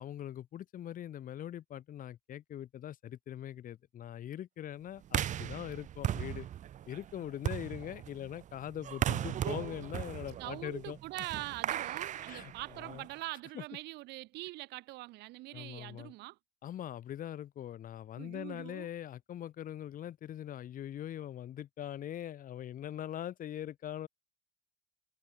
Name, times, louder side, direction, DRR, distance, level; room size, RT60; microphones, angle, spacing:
voice 1, 0.0-6.5 6.9-11.0 12.3-13.1 13.5-13.6 15.5-16.1 16.6-24.1, left 11 dB, 55° left, 1.3 m, -42 dB
sound 1, 5.1-13.2, right 11 dB, 45° right, 0.6 m, -37 dB
voice 2, 10.4-16.4 18.2-18.9, right 20 dB, 85° right, 0.9 m, -43 dB
cardioid pair, 110°, 17 cm